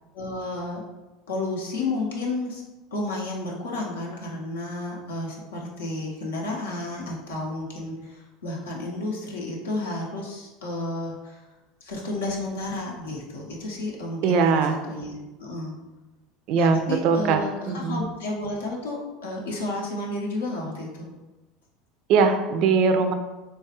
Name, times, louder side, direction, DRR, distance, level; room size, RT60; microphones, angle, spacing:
voice 1, 0.1-0.8 1.3-2.6 2.9-11.4 11.8-15.7 16.5-21.1, left 2 dB, 85° left, -2 dB, 0.6 m, -32 dB
voice 2, 14.2-14.8 16.5-17.4 17.7-18.0 22.1-23.1, right 5 dB, 60° right, 7 dB, 0.3 m, -21 dB
3.0 x 2.3 x 2.8 m, 1.1 s
hypercardioid pair, 80°, 0 cm